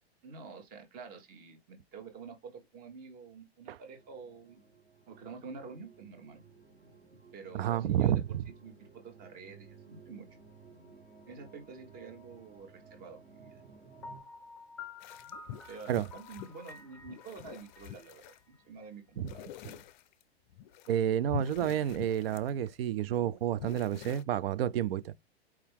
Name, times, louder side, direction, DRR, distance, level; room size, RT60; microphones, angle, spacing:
voice 1, 0.2-4.6 5.1-6.4 7.1-8.2 8.6-10.3 11.3-13.6 15.7-19.5, right 5 dB, 25° right, 1.3 m, -48 dB
sound 1, 3.9-14.2, right 5 dB, 90° right, 3.0 m, -57 dB
voice 2, 7.5-8.4 15.9-16.1 19.2-19.3 20.9-25.1, right 10 dB, 65° right, 0.5 m, -30 dB
Piano, 14.0-18.9, left 5 dB, 5° left, 0.6 m, -50 dB
sound 2, 15.0-18.4 19.2-20.2 20.5-20.9 21.3-23.0 23.3-24.2, left 11 dB, 45° left, 0.4 m, -46 dB
4.6 x 2.8 x 3.6 m
hypercardioid pair, 135°, 32 cm